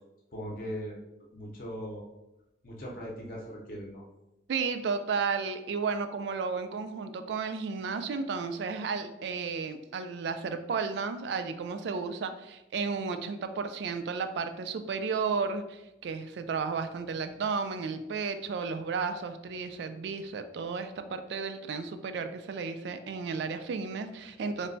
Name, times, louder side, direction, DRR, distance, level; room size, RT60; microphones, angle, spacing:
voice 1, 0.3-1.0 1.3-2.1 2.6-4.0, equal, 50° left, -2 dB, 0.6 m, -39 dB
voice 2, 4.5-24.7, right 5 dB, 75° right, 9 dB, 0.3 m, -33 dB
3.2 x 2.2 x 3.8 m, 0.93 s
head